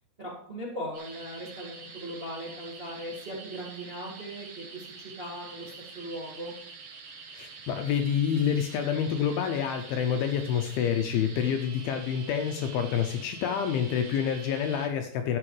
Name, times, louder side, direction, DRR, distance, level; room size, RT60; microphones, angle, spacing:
voice 1, 0.2-6.5, equal, 35° right, -5 dB, 0.9 m, -39 dB
sound 1, 0.9-14.9, right 4 dB, 85° right, 1.3 m, -46 dB
voice 2, 7.3-15.4, left 8 dB, 80° left, 6 dB, 2.2 m, -28 dB
13.5 x 7.7 x 3.2 m, 0.71 s
omnidirectional pair, 4.8 m